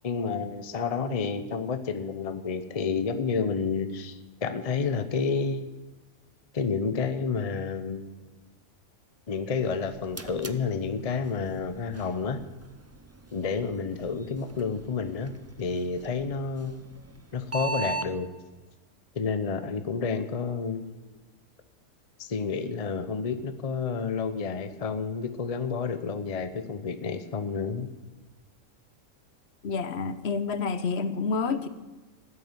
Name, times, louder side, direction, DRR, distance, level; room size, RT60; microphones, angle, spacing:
voice 1, 0.0-5.7 6.5-8.1 9.3-12.4 13.3-15.3 15.6-16.7 17.3-18.3 19.1-21.2 22.2-27.9, left 5 dB, 30° left, 10 dB, 0.8 m, -30 dB
sound 1, 9.7-18.1, right 3 dB, 20° right, 0.4 m, -40 dB
voice 2, 29.6-31.7, left 4 dB, 55° left, 12 dB, 1.2 m, -28 dB
13.5 x 8.1 x 9.7 m, 1.2 s
omnidirectional pair, 1.4 m